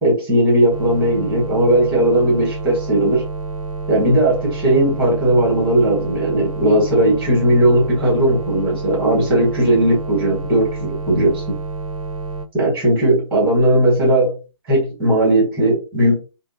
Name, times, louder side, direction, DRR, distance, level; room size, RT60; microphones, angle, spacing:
voice 1, 0.0-3.2 3.9-11.4 12.5-14.4 14.7-16.2, right 1 dB, 10° right, -3 dB, 1.3 m, -17 dB
sound 1, 0.7-12.5, right 3 dB, 85° right, 0.5 m, -29 dB
3.1 x 2.1 x 2.7 m, 0.32 s
figure-of-eight pair, 135°, 17 cm